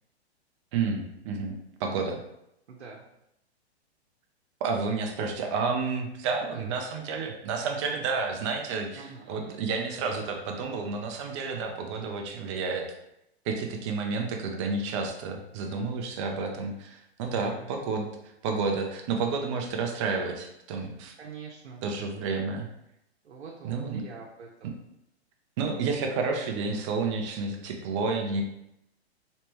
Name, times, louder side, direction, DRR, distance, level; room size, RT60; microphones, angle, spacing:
voice 1, 0.7-2.2 4.6-12.9 13.4-18.1 18.4-21.1 21.8-22.7 23.6-24.0 24.6-24.7 25.6-28.4, right 4 dB, 30° right, 2 dB, 0.5 m, -30 dB
voice 2, 2.7-3.0 6.4-6.8 8.9-9.6 17.2-17.7 21.2-21.8 23.2-24.5, right 5 dB, 90° right, -2 dB, 0.8 m, -44 dB
3.2 x 3.1 x 3.0 m, 0.81 s
hypercardioid pair, 140°, 33 cm